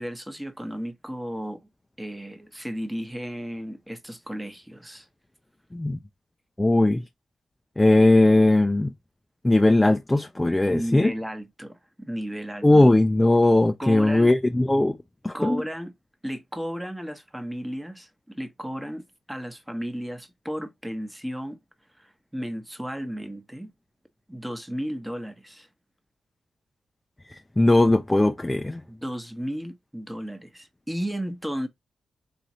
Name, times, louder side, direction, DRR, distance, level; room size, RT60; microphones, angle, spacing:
voice 1, 0.0-1.6 2.0-5.1 10.7-12.7 13.8-14.3 15.3-15.9 16.2-21.6 22.0-23.7 24.3-25.7 28.9-31.7, equal, 5° right, 1.0 m, -34 dB
voice 2, 6.6-7.0 7.8-8.9 9.4-11.1 12.6-15.0 15.2-15.6 27.3-28.8, left 2 dB, 15° left, 0.4 m, -19 dB
3.8 x 2.7 x 2.9 m
cardioid pair, 65°, 0 cm